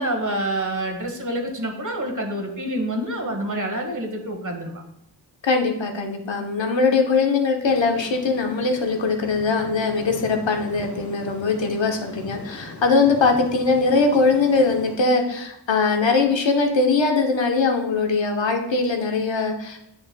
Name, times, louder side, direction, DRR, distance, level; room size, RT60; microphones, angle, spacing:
voice 1, 0.0-4.8, right 1 dB, 45° right, 3 dB, 1.4 m, -27 dB
voice 2, 5.4-19.8, left 4 dB, 90° left, 3 dB, 1.0 m, -21 dB
sound 1, 7.6-15.0, left 3 dB, 40° left, 1.1 m, -40 dB
9.3 x 5.4 x 2.3 m, 0.79 s
wide cardioid pair, 60°, 43 cm